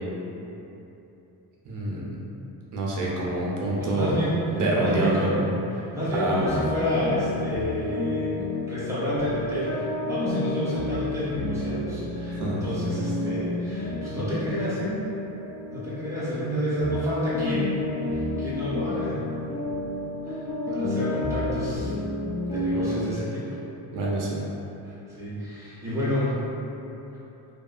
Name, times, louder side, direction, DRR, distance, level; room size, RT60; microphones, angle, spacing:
voice 1, 1.6-2.1 2.7-4.2 4.5-5.2 6.1-6.4 12.3-12.6 23.9-24.4, right 2 dB, 50° right, -4 dB, 0.6 m, -26 dB
voice 2, 3.8-4.3 4.8-5.4 5.7-8.4 8.7-15.0 15.6-17.7 18.1-19.2 20.2-20.4 20.7-21.9 22.5-23.6 24.8-26.3, equal, 5° right, -11 dB, 0.6 m, -29 dB
sound 1, 6.4-16.5 16.8-23.1, left 2 dB, 35° left, 0.4 m, -30 dB
2.7 x 2.4 x 2.3 m, 2.9 s
cardioid pair, 155°, 41 cm